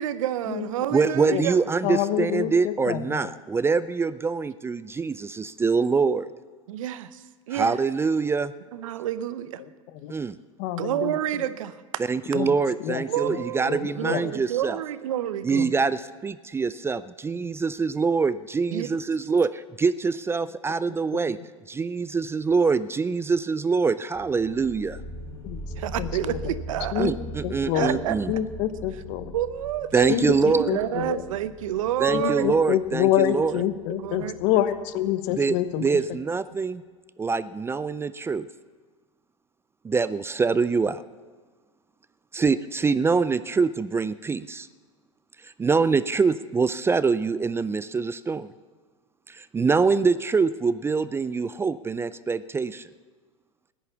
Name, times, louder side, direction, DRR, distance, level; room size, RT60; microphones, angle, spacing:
voice 1, 0.0-1.6 6.7-7.8 8.7-9.6 10.8-11.8 13.1-15.7 18.7-18.9 25.8-27.1 27.7-28.4 29.3-32.5 33.5-33.6 33.9-34.3 35.8-35.9, right 12 dB, 75° right, 14 dB, 0.8 m, -29 dB
voice 2, 0.9-6.3 7.5-8.5 10.1-10.4 12.1-14.8 15.4-21.4 21.7-25.0 27.0-28.3 29.9-30.7 32.0-33.6 35.3-35.6 35.8-36.8 37.2-38.5 39.8-41.0 42.3-44.7 45.4-48.5 49.3-52.9, right 4 dB, 15° right, 16 dB, 0.4 m, -24 dB
voice 3, 1.8-3.2 10.0-10.1 10.6-11.2 12.3-12.5 12.8-13.0 13.3-13.4 13.7-14.2 15.6-15.7 25.4-25.6 26.0-26.4 26.9-27.1 27.4-28.0 28.3-29.3 30.1-31.2 32.1-36.0, left 12 dB, 55° left, 12 dB, 1.1 m, -27 dB
sound 1, 24.1-35.5, equal, 25° left, 3.6 m, -41 dB
14.5 x 10.0 x 7.1 m, 1.5 s
hypercardioid pair, 100°, 17 cm